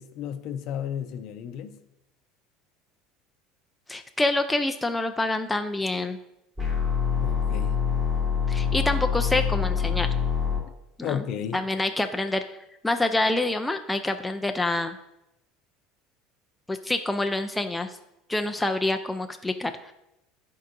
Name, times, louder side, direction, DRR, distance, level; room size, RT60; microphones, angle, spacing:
voice 1, 0.0-1.8 7.2-7.8 11.0-11.6, left 9 dB, 60° left, 9 dB, 0.6 m, -33 dB
voice 2, 3.9-6.2 8.5-10.1 11.0-11.2 11.5-12.4 12.8-15.0 16.7-17.9 18.3-19.9, left 2 dB, 10° left, 6 dB, 0.4 m, -26 dB
sound 1, 6.6-10.6, left 6 dB, 20° right, 2.4 m, -25 dB
11.0 x 4.7 x 2.6 m, 0.89 s
supercardioid pair, 120°, 0 cm